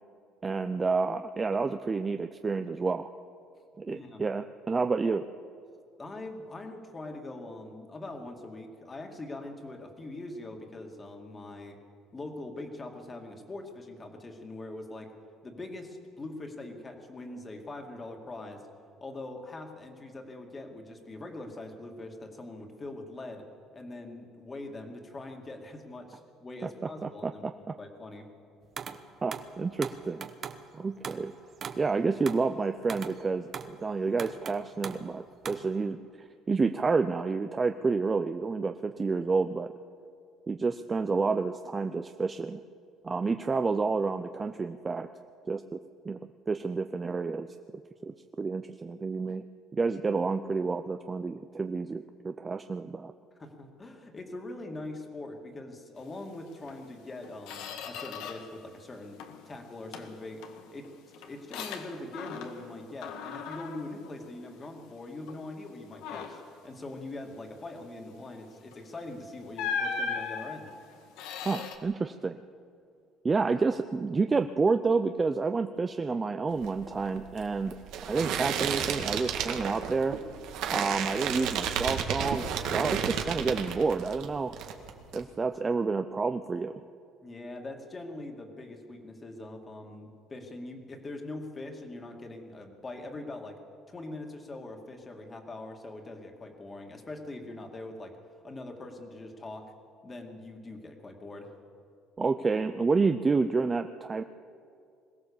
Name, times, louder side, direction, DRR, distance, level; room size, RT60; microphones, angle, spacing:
voice 1, 0.4-3.1 3.8-5.3 27.0-27.8 29.2-30.3 30.7-31.3 31.8-36.0 36.5-39.7 40.5-42.6 43.0-45.1 45.5-45.8 46.0-46.2 46.5-47.5 48.0-49.4 49.7-53.1 71.4-72.4 73.2-80.2 80.7-84.6 85.1-86.7 102.2-104.2, right 4 dB, 20° right, 8 dB, 0.5 m, -29 dB
voice 2, 3.9-4.2 6.0-11.8 12.1-15.1 15.4-18.7 19.0-23.5 23.7-27.4 27.8-28.3 53.4-60.4 60.7-60.9 61.2-70.7 87.2-93.6 93.9-98.2 98.4-99.7 100.0-101.5, left 2 dB, 20° left, 3 dB, 2.2 m, -42 dB
sound 1, 28.8-29.0 29.3-30.6 31.0-31.3 31.6-33.8 34.2-35.2 35.4-35.8, right 7 dB, 40° right, 1.0 m, -40 dB
Squeak, 56.7-56.8 57.2-58.6 58.9-59.5 59.9-62.7 63.0-64.9 65.3-65.5 65.9-66.6 68.7-68.9 69.6-71.8, left 5 dB, 85° left, 1.7 m, -38 dB
sound 2, 76.5-84.3 84.5-85.2, right 8 dB, 75° right, 1.8 m, -32 dB
21.5 x 17.0 x 7.1 m, 2.4 s
cardioid pair, 130°, 0 cm